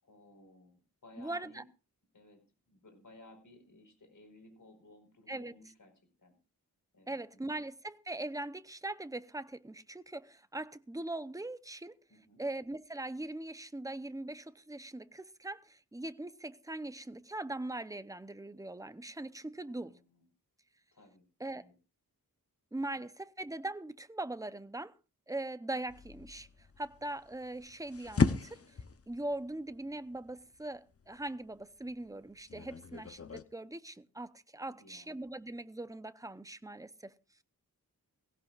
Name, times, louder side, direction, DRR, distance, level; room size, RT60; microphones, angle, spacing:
voice 1, 0.0-1.6 2.1-2.4 2.7-5.9 6.2-6.3 6.9-7.4 12.1-12.4 19.7-20.3 20.9-21.2 21.5-21.7 22.7-23.0 34.6-35.1, left 2 dB, 60° left, 5.1 m, -58 dB
voice 2, 1.2-1.6 5.3-5.5 7.1-12.0 12.4-20.0 21.4-21.6 22.7-24.9 25.3-26.5 26.8-28.8 29.1-37.1, right 2 dB, 10° right, 0.8 m, -41 dB
sound 1, 25.9-33.4, left 5 dB, 40° left, 0.9 m, -37 dB
19.0 x 17.0 x 2.5 m
wide cardioid pair, 115°, 36 cm